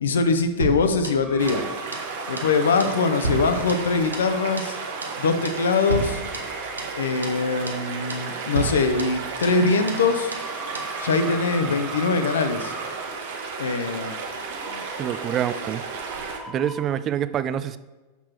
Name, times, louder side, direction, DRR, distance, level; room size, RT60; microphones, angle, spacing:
voice 1, 0.0-1.6 2.3-4.8 5.2-6.2 6.9-10.3 11.0-12.7 13.6-14.2 14.7-14.9, left 4 dB, 65° left, 8 dB, 0.7 m, -23 dB
sound 1, 0.6-1.7 1.9-2.1 2.4-2.5 2.8-4.3 4.6-4.8 5.0-5.2 5.4-5.6 5.9-7.0 7.2-7.4 7.7-7.8 8.1-8.3 8.5-9.6 9.9-10.0 10.3-10.5 10.7-10.9, right 2 dB, 75° right, 0.9 m, -32 dB
sound 2, 1.2-16.8, right 2 dB, 10° right, 0.8 m, -42 dB
sound 3, 1.4-16.4, right 4 dB, 55° right, 1.1 m, -33 dB
voice 2, 15.0-15.8 16.5-17.8, right 9 dB, 30° right, 14 dB, 0.4 m, -26 dB
6.9 x 6.0 x 4.4 m, 1.2 s
figure-of-eight pair, 90°, 0 cm